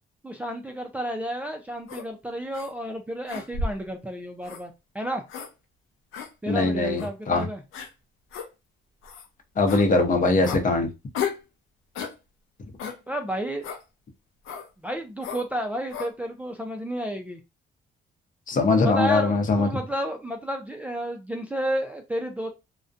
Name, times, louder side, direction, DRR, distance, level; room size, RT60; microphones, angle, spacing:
voice 1, 0.2-5.2 6.4-7.6 13.1-13.7 14.8-17.4 18.8-22.5, right 1 dB, 5° right, 0.4 m, -31 dB
sound 1, 1.9-2.1 2.5-2.7 3.3-3.9 4.4-4.6 5.3-5.5 6.1-6.3 7.0-7.1 7.7-7.9 8.3-8.5 9.0-9.3 9.7-9.9 10.4-10.6 11.1-11.4 11.9-12.2 12.8-13.0 13.6-13.8 14.4-14.7 15.2-15.5 15.9-16.1, left 5 dB, 85° left, 0.5 m, -33 dB
voice 2, 6.5-7.4 9.6-10.9 18.5-19.7, left 3 dB, 40° left, 0.7 m, -21 dB
2.5 x 2.1 x 2.4 m
cardioid pair, 90°, 20 cm